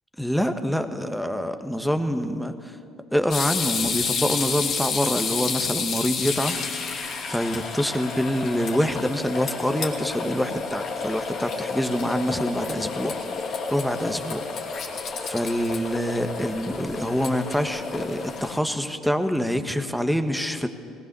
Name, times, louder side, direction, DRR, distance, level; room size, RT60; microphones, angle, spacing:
voice 1, 0.2-2.5 3.1-6.8 7.3-14.5 15.2-20.7, equal, ahead, 7 dB, 1.5 m, -26 dB
sound 1, 3.3-18.6, left 5 dB, 50° left, 2.8 m, -30 dB
19.5 x 19.0 x 7.0 m, 2.5 s
hypercardioid pair, 60°, 0 cm